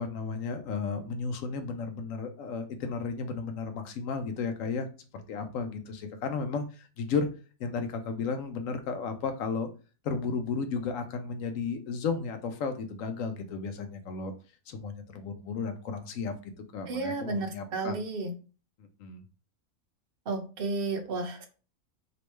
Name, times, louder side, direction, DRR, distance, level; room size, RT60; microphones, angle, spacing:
voice 1, 0.0-4.9 5.1-7.3 7.6-9.7 10.0-14.3 14.7-18.0 18.8-19.2, left 5 dB, 70° left, 7 dB, 0.9 m, -34 dB
voice 2, 16.9-18.3 20.3-21.5, right 3 dB, 55° right, 5 dB, 0.7 m, -32 dB
3.1 x 3.0 x 3.1 m, 0.36 s
omnidirectional pair, 1.5 m